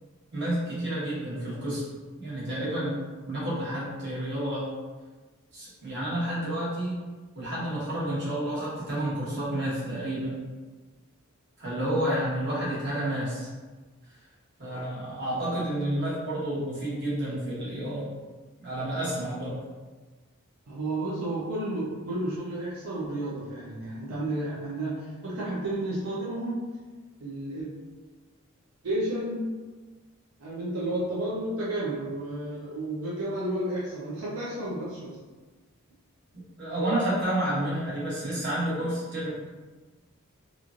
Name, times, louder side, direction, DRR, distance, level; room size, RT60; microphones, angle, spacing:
voice 1, 0.3-1.8 2.2-3.0 3.2-4.7 5.5-7.0 7.3-10.3 11.6-13.5 14.6-18.1 18.6-19.6 36.6-39.3, right 1 dB, 55° right, -9 dB, 1.2 m, -30 dB
voice 2, 20.7-26.7 27.2-27.7 28.8-29.6 30.4-35.2, right 1 dB, 90° right, -7 dB, 0.6 m, -32 dB
3.0 x 2.5 x 2.4 m, 1.3 s
head